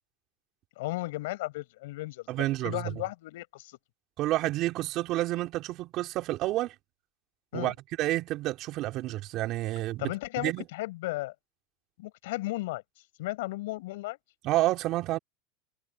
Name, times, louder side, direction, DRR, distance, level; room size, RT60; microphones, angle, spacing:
voice 1, 0.8-3.8 7.5-7.7 10.0-11.3 12.0-12.8 13.2-14.2, left 19 dB, 80° left, 5.8 m, -35 dB
voice 2, 2.3-2.8 4.2-6.7 7.5-10.1 10.4-10.6 14.4-15.2, right 16 dB, 45° right, 4.3 m, -29 dB
supercardioid pair, 140°, 0 cm